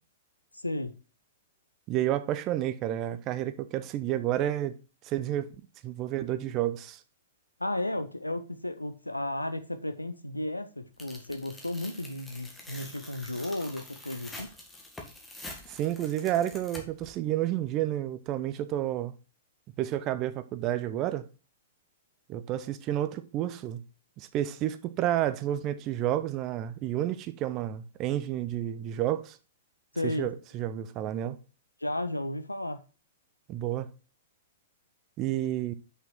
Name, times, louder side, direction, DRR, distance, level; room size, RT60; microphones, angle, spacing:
voice 1, 0.5-1.0 7.6-14.5 29.9-30.3 31.8-32.8, left 1 dB, 90° left, 0.9 m, -34 dB
voice 2, 1.9-4.8 5.0-5.5 5.8-7.0 15.7-19.1 19.8-21.3 22.3-23.8 24.2-29.4 30.2-31.4 33.5-33.9 35.2-35.7, right 12 dB, 30° right, 0.7 m, -30 dB
Tearing, 11.0-17.1, left 2 dB, 10° left, 1.8 m, -46 dB
6.0 x 6.0 x 5.6 m
figure-of-eight pair, 110°, 0 cm